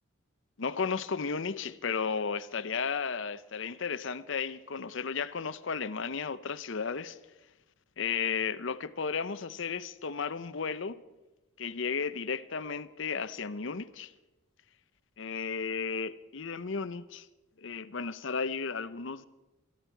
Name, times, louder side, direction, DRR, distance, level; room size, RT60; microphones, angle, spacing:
voice 1, 0.6-7.2 8.0-11.0 11.6-14.1 15.2-17.3 17.6-19.3, left 5 dB, 65° left, 0.7 m, -34 dB
22.0 x 14.0 x 4.6 m
head